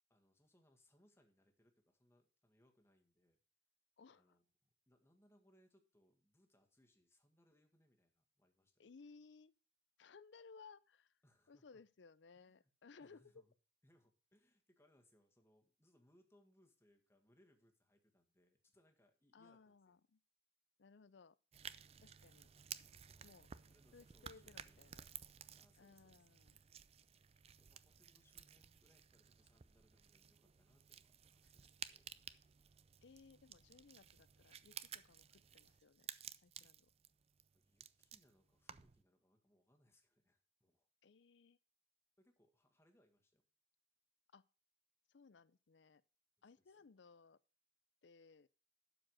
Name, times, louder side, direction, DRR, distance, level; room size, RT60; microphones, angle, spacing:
voice 1, 0.1-3.4 4.1-8.9 11.2-11.7 12.4-12.7 13.0-13.5 13.8-20.0 23.0-25.2 25.6-26.3 27.5-32.2 36.7-36.8 37.5-40.9 42.2-43.5 46.4-46.9, equal, 15° left, 1.7 m, -74 dB
voice 2, 4.0-4.4 8.8-9.5 10.0-11.1 11.5-13.3 19.3-20.2 20.8-21.4 22.0-22.5 23.2-23.5 23.9-25.0 25.8-26.6 31.4-31.5 33.0-36.1 36.4-36.9 41.0-41.6 44.3-44.4 45.1-46.0 46.4-47.4 48.0-48.5, left 4 dB, 70° left, 0.5 m, -62 dB
sound 1, 21.5-39.0, right 9 dB, 35° right, 0.4 m, -55 dB
12.0 x 5.0 x 6.3 m
head